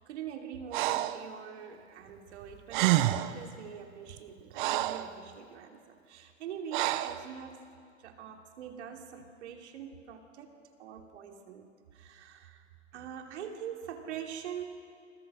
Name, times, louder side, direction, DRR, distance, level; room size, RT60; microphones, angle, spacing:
voice 1, 0.0-2.9 3.3-7.7 8.0-12.7 12.9-14.6, right 8 dB, 60° right, 4 dB, 3.0 m, -44 dB
Breathing, 0.7-1.2 2.4-2.5 2.7-3.4 4.1-5.1 6.7-7.2, right 15 dB, 40° right, 0.9 m, -28 dB
30.0 x 21.0 x 6.2 m, 2.3 s
hypercardioid pair, 125°, 38 cm